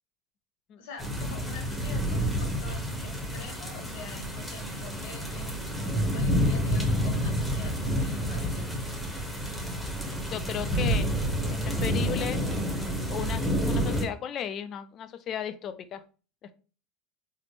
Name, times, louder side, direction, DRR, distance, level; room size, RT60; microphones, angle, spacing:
voice 1, 0.8-8.9, left 3 dB, 80° left, 3 dB, 1.2 m, -45 dB
sound 1, 1.0-14.1, equal, ahead, 0.9 m, -29 dB
voice 2, 10.3-11.2 11.5-12.8 13.1-16.0 16.4-16.5, left 9 dB, 40° left, 12 dB, 0.4 m, -35 dB
4.2 x 2.1 x 3.0 m, 0.37 s
supercardioid pair, 120°, 0 cm